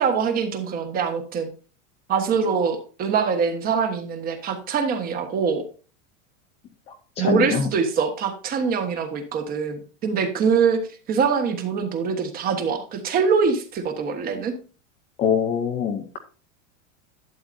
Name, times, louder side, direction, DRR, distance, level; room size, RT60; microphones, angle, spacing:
voice 1, 0.0-1.5 2.1-5.6 7.2-10.8 11.1-14.5, right 6 dB, 20° right, 6 dB, 1.3 m, -23 dB
voice 2, 7.2-7.7 15.2-16.2, left 7 dB, 15° left, 4 dB, 0.5 m, -23 dB
11.5 x 8.1 x 2.6 m, 0.37 s
supercardioid pair, 170°, 39 cm